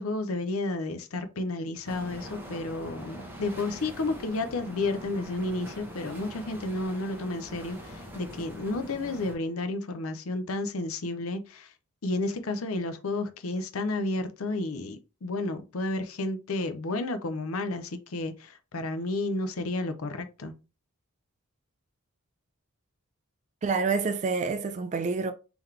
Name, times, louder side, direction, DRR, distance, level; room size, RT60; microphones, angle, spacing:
voice 1, 0.0-11.7 12.0-20.5, left 2 dB, 70° left, 0.6 m, -31 dB
sound 1, 1.8-9.3, equal, 10° right, 0.9 m, -43 dB
voice 2, 23.6-25.3, right 4 dB, 35° right, 0.3 m, -27 dB
3.8 x 3.0 x 3.2 m
head